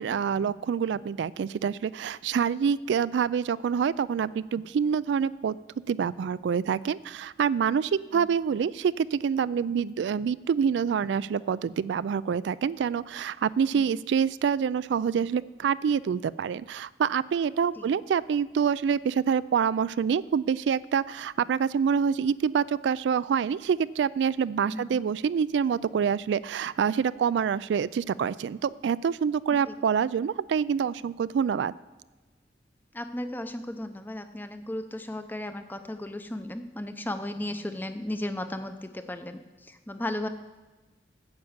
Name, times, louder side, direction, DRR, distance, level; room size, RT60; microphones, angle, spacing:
voice 1, 0.0-5.6 5.9-31.7, right 7 dB, 80° right, 18 dB, 0.3 m, -26 dB
voice 2, 24.6-25.0 29.7-29.8 32.9-40.3, left 1 dB, 10° left, 8 dB, 0.6 m, -35 dB
9.7 x 6.9 x 8.0 m, 1.2 s
head